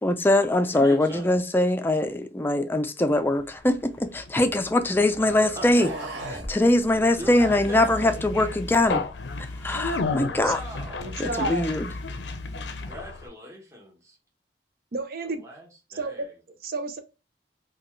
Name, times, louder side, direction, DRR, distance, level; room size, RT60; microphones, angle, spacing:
voice 1, 0.0-5.9 6.5-9.0 9.6-10.6 11.2-11.9, left 1 dB, 10° left, 0.4 m, -22 dB
voice 2, 0.7-1.3 5.6-5.7 7.2-8.1 10.2-11.1 12.5-14.1 15.4-15.7 15.9-16.2, equal, 15° right, 1.0 m, -40 dB
sound 1, 3.3-4.8 5.5-6.6, right 1 dB, 75° right, 1.4 m, -37 dB
Conversation, 3.8-13.3, left 3 dB, 70° left, 0.5 m, -34 dB
voice 3, 11.0-11.7 14.9-15.4 15.9-17.0, right 3 dB, 55° right, 0.6 m, -31 dB
3.9 x 2.3 x 3.1 m
head